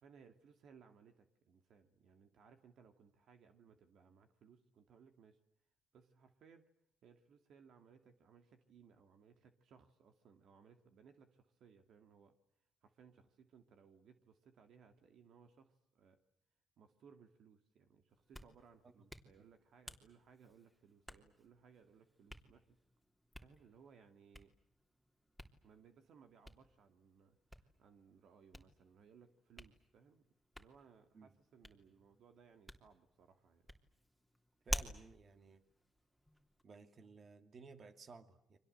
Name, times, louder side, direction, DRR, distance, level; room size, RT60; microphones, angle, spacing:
voice 1, 0.0-5.4 5.9-6.7 7.0-12.4 12.8-16.2 16.8-22.8 23.4-24.5 25.6-30.2 30.6-33.6, right 6 dB, 70° right, 7 dB, 2.4 m, -64 dB
Hands, 18.1-36.6, equal, 5° right, 3.1 m, -52 dB
voice 2, 34.6-35.6 36.6-38.6, right 4 dB, 45° right, 8 dB, 2.6 m, -57 dB
30.0 x 24.5 x 8.0 m, 0.76 s
cardioid pair, 90°, 0 cm